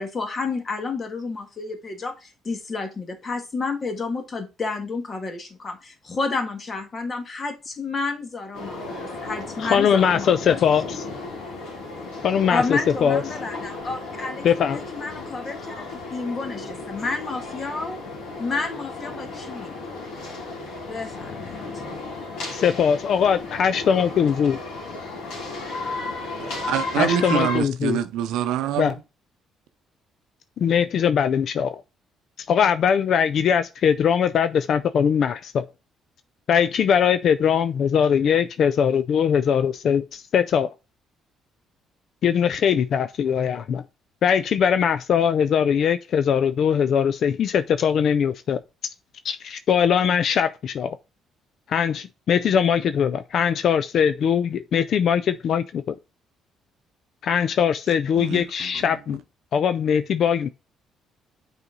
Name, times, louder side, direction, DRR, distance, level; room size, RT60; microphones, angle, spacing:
voice 1, 0.0-10.6 12.5-14.5 14.7-18.0 18.4-19.8 20.9-21.4, left 4 dB, 40° left, 1.6 m, -30 dB
sound 1, 8.5-27.6, left 3 dB, 80° left, 2.6 m, -34 dB
voice 2, 9.7-11.0 12.2-13.2 14.4-14.8 22.5-24.6 27.0-28.0 28.8-28.9 30.6-31.8 32.5-35.7 36.5-40.7 42.2-43.8 44.2-48.6 49.2-51.0 51.7-55.9 57.2-59.2 59.5-60.5, left 7 dB, 60° left, 0.3 m, -21 dB
voice 3, 26.4-28.9 58.2-58.9, right 11 dB, 80° right, 0.6 m, -26 dB
6.8 x 4.1 x 3.8 m
supercardioid pair, 70°, 0 cm